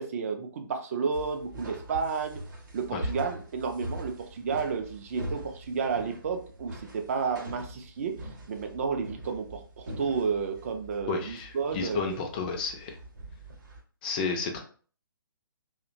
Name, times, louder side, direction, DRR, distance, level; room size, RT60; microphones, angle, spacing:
voice 1, 0.0-2.4 2.7-12.2, right 5 dB, 40° right, 5 dB, 0.4 m, -31 dB
sound 1, 1.1-13.8, right 1 dB, 55° right, 0.8 m, -42 dB
voice 2, 11.1-13.0 14.0-14.6, left 5 dB, 25° left, 3 dB, 0.4 m, -32 dB
2.7 x 2.1 x 2.5 m, 0.42 s
figure-of-eight pair, 135°, 12 cm